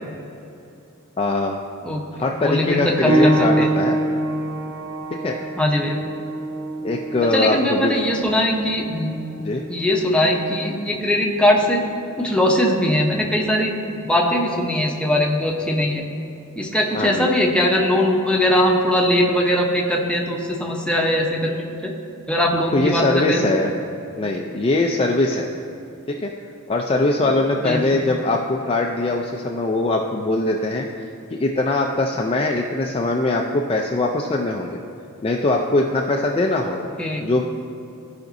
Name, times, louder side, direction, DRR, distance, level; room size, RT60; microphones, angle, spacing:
voice 1, 1.2-1.6 2.1-4.0 5.2-5.4 6.8-7.9 9.4-9.6 16.9-17.3 22.7-23.7 24.2-25.5 26.1-26.3 26.7-34.8 35.2-36.9 37.2-37.4, left 2 dB, 25° left, 1 dB, 0.4 m, -21 dB
voice 2, 2.4-3.7 5.6-6.0 7.3-9.1 9.7-11.8 12.2-13.7 14.0-16.0 16.5-21.6 21.8-21.9 22.3-23.4 27.2-27.3 27.6-28.0 36.6-37.2, left 1 dB, 5° left, -1 dB, 0.8 m, -20 dB
sound 1, 3.1-13.3 14.2-14.4 15.1-15.2, right 1 dB, 60° right, 1.4 m, -26 dB
14.5 x 5.1 x 2.6 m, 2.8 s
head